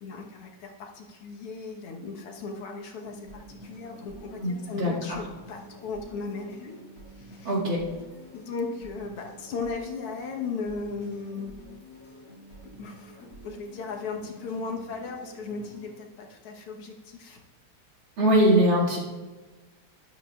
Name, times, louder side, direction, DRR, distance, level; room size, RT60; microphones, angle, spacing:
voice 1, 0.0-6.8 7.2-7.5 8.3-11.6 12.6-17.4, left 4 dB, 85° left, 1 dB, 2.1 m, -36 dB
sound 1, 3.0-16.0, equal, 60° left, 3.1 m, -49 dB
voice 2, 4.4-5.2 7.4-7.9 18.2-19.0, equal, 60° right, -5 dB, 2.9 m, -22 dB
12.5 x 11.0 x 2.4 m, 1.3 s
omnidirectional pair, 2.4 m